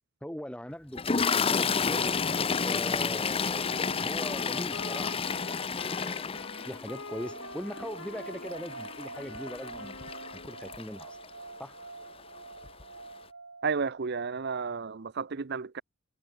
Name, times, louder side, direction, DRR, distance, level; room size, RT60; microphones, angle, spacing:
voice 1, 0.2-2.2 2.6-10.0 10.3-11.2 11.6-11.7, equal, 5° left, 1.8 m, -41 dB
Toilet flush, 1.0-11.3 12.2-12.4 12.6-12.8, left 5 dB, 30° left, 0.6 m, -31 dB
Wind instrument woodwind instrument, 1.9-10.8, left 3 dB, 75° left, 3.9 m, -47 dB
sound 1, 7.1-14.2, right 3 dB, 80° right, 4.0 m, -46 dB
voice 2, 13.6-15.8, right 5 dB, 55° right, 0.7 m, -32 dB
head